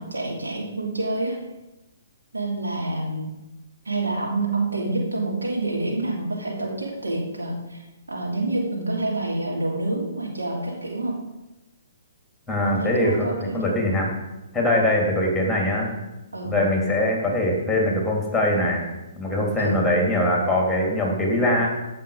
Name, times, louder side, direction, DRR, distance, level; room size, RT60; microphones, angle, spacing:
voice 1, 0.0-1.4 2.3-3.3 3.8-7.8 8.1-11.2 12.7-13.8 16.3-16.5 19.6-19.8, right 2 dB, 85° right, -1 dB, 2.8 m, -27 dB
voice 2, 12.5-14.1 14.5-15.9 16.4-18.9 19.2-21.7, left 1 dB, 5° left, -1 dB, 3.0 m, -22 dB
15.0 x 5.8 x 4.9 m, 0.99 s
figure-of-eight pair, 130°, 0 cm